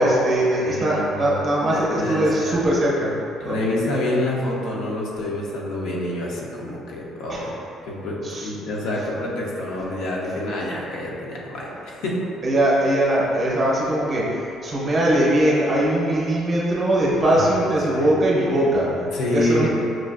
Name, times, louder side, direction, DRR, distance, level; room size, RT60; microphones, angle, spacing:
voice 1, 0.0-3.6 7.3-7.5 8.2-8.5 12.4-19.7, right 1 dB, 30° right, -5 dB, 0.7 m, -21 dB
voice 2, 0.6-2.6 3.4-7.5 7.8-12.2 17.2-18.1 19.1-19.7, left 1 dB, 70° left, -4 dB, 0.7 m, -27 dB
6.0 x 2.4 x 2.4 m, 2.6 s
cardioid pair, 160°, 0 cm